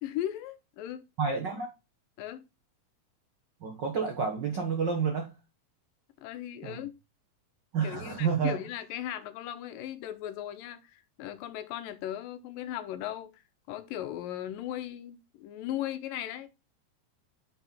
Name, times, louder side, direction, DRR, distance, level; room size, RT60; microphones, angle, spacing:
voice 1, 0.0-1.0 2.2-2.4 6.2-7.0 7.8-13.3 13.7-16.5, left 12 dB, 85° left, 2.4 m, -37 dB
voice 2, 1.2-1.7 3.6-5.3 6.6-6.8 7.7-8.6, right 6 dB, 85° right, 0.9 m, -29 dB
6.6 x 5.6 x 4.1 m
omnidirectional pair, 4.0 m